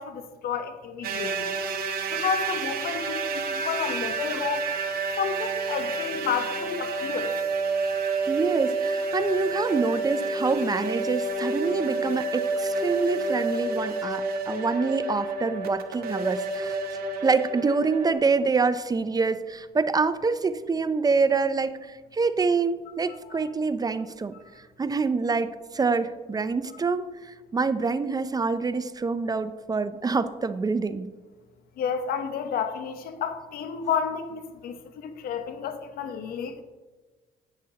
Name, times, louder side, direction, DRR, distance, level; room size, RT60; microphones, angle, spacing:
voice 1, 0.0-1.5 2.1-4.6 5.2-7.3 23.3-23.4 31.8-36.6, left 7 dB, 70° left, 9 dB, 0.9 m, -31 dB
sound 1, 1.0-18.1, right 3 dB, 70° right, 1.1 m, -29 dB
voice 2, 8.3-31.1, right 4 dB, 25° right, 13 dB, 0.4 m, -26 dB
10.5 x 8.8 x 2.8 m, 1.3 s
cardioid pair, 85°, 16 cm